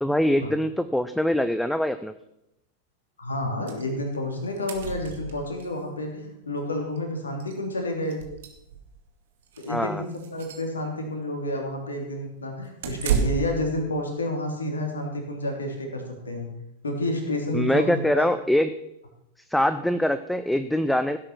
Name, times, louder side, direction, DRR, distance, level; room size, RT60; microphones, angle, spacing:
voice 1, 0.0-2.1 9.7-10.0 17.5-18.7 19.5-21.2, left 1 dB, ahead, 11 dB, 0.6 m, -23 dB
voice 2, 3.2-8.2 9.6-16.5 16.8-18.3, left 1 dB, 75° left, 3 dB, 3.3 m, -30 dB
sound 1, 3.7-3.8 4.1-4.2 4.4-5.7 7.0-7.1 7.4-7.5 8.0-9.0 9.5-9.7 10.1-10.7 12.8-13.7, right 6 dB, 60° right, 2.2 m, -30 dB
16.0 x 8.7 x 6.0 m, 0.84 s
figure-of-eight pair, 90°, 0 cm